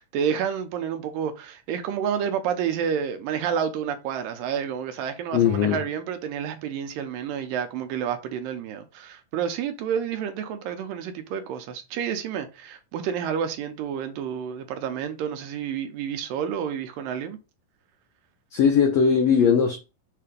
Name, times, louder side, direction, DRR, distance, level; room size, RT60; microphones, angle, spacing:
voice 1, 0.0-17.4, right 8 dB, 80° right, 2.4 m, -29 dB
voice 2, 5.3-5.8 18.5-19.8, left 7 dB, 85° left, 1.5 m, -19 dB
6.7 x 2.8 x 5.0 m
omnidirectional pair, 4.1 m